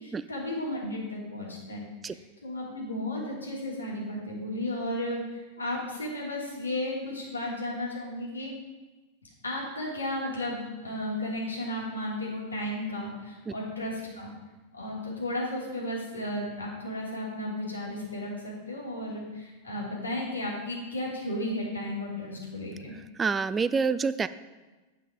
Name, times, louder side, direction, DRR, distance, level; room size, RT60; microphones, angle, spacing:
voice 1, 0.0-8.5 9.4-14.3 14.7-22.9, left 1 dB, 85° left, -4 dB, 2.6 m, -34 dB
voice 2, 23.2-24.3, right 5 dB, 20° right, 15 dB, 0.3 m, -27 dB
9.2 x 5.6 x 5.0 m, 1.2 s
figure-of-eight pair, 90°, 0 cm